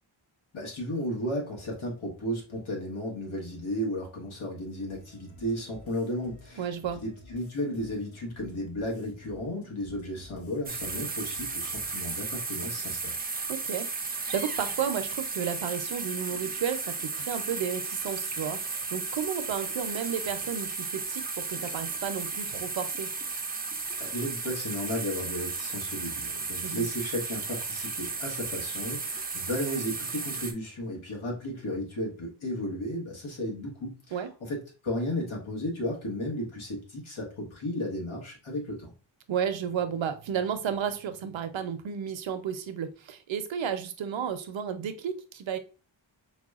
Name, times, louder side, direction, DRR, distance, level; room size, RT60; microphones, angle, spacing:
voice 1, 0.5-13.2 24.0-38.9, equal, 80° left, -1 dB, 1.3 m, -34 dB
sound 1, 4.9-12.1, left 1 dB, 30° left, 0.6 m, -53 dB
voice 2, 6.6-7.0 13.5-23.1 26.6-26.9 34.1-34.3 39.3-45.6, right 8 dB, 70° right, 8 dB, 0.6 m, -32 dB
sound 2, 10.7-30.5, right 4 dB, 20° right, 0.4 m, -34 dB
4.8 x 2.2 x 2.3 m, 0.32 s
wide cardioid pair, 100°, 48 cm